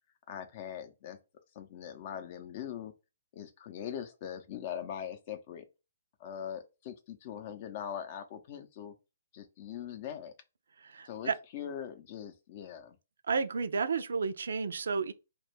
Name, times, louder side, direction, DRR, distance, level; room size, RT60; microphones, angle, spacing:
voice 1, 0.3-1.2 1.5-2.9 3.3-5.7 6.2-8.9 9.3-10.3 11.1-13.0, left 9 dB, 45° left, 0.5 m, -41 dB
voice 2, 10.8-11.4 13.3-15.1, right 5 dB, 75° right, 0.3 m, -32 dB
2.2 x 2.1 x 3.1 m
hypercardioid pair, 140°, 0 cm